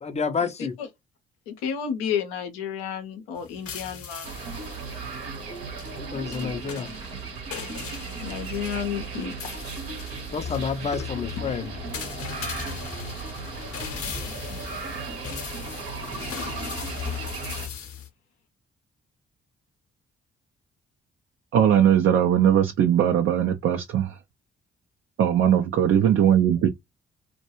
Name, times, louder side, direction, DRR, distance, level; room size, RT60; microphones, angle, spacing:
voice 1, 0.0-0.8 6.0-6.9 10.3-11.7, left 5 dB, 25° left, 0.5 m, -29 dB
voice 2, 1.5-4.3 6.1-6.9 8.2-9.3, left 8 dB, 75° left, 0.7 m, -32 dB
sound 1, 3.4-18.1, left 8 dB, 50° left, 0.9 m, -38 dB
sound 2, 4.2-17.7, right 5 dB, 80° right, 0.8 m, -36 dB
voice 3, 21.5-24.1 25.2-26.7, right 9 dB, 45° right, 0.5 m, -20 dB
2.2 x 2.2 x 2.9 m
figure-of-eight pair, 40°, 29 cm